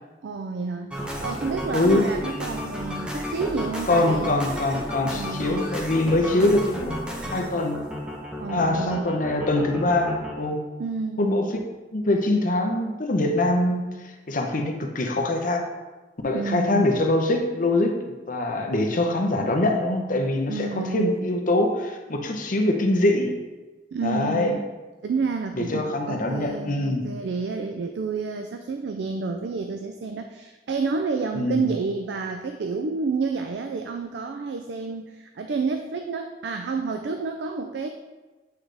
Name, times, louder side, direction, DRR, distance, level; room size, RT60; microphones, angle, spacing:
voice 1, 0.2-0.9 1.2-4.4 5.0-5.6 8.4-9.0 10.8-11.3 16.3-16.9 20.5-21.1 23.9-24.6 25.0-37.9, right 4 dB, 70° right, 5 dB, 0.4 m, -29 dB
sound 1, 0.9-10.3, equal, 5° right, 0.8 m, -33 dB
voice 2, 1.7-2.0 3.9-7.0 7.3-7.9 8.5-10.6 11.2-11.5 11.9-15.6 16.2-23.4 24.0-24.5 25.5-27.0 31.3-31.8, left 2 dB, 50° left, 3 dB, 0.8 m, -23 dB
8.1 x 3.8 x 3.4 m, 1.2 s
head